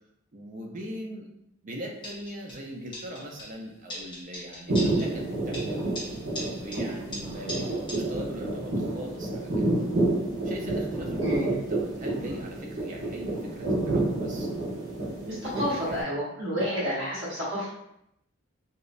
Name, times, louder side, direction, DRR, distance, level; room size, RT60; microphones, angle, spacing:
voice 1, 0.3-1.3 1.6-5.8 6.4-9.6 10.4-14.5 15.8-16.1 16.6-16.7, equal, 40° right, 1 dB, 0.4 m, -40 dB
sound 1, 2.0-2.6 2.9-3.6 3.9-5.2 5.5-8.0, left 1 dB, 25° left, 0.5 m, -40 dB
sound 2, 4.7-16.0, right 2 dB, 90° right, 1.1 m, -29 dB
voice 2, 11.2-11.5 15.2-17.7, equal, 65° right, -7 dB, 0.9 m, -30 dB
2.8 x 2.0 x 2.5 m, 0.79 s
head